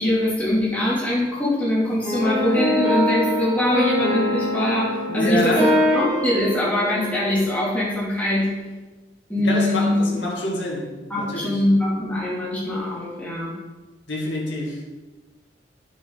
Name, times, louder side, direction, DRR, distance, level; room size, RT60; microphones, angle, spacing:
voice 1, 0.0-8.5 9.3-10.0 11.1-13.5, left 1 dB, 10° left, -8 dB, 3.1 m, -22 dB
sound 1, 2.0-7.7, left 1 dB, 35° right, 3.3 m, -24 dB
voice 2, 5.1-5.7 9.4-10.9 11.1-11.6 14.1-14.8, left 1 dB, 65° left, -3 dB, 2.3 m, -26 dB
9.2 x 7.7 x 4.1 m, 1.2 s
head